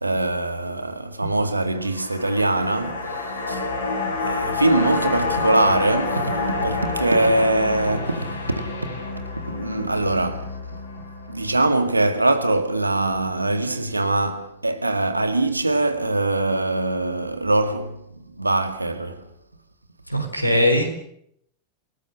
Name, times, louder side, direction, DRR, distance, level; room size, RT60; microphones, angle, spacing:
voice 1, 0.0-3.1 3.5-3.6 4.3-6.3 6.6-8.6 9.5-10.5 11.3-18.0 18.4-19.2, right 2 dB, 85° right, 2.0 m, -22 dB
sound 1, 1.7-12.2 12.5-12.6, left 3 dB, 65° left, 7.0 m, -28 dB
voice 2, 20.1-20.9, left 1 dB, 90° left, 4.0 m, -20 dB
28.5 x 18.5 x 6.4 m
figure-of-eight pair, 90°, 0 cm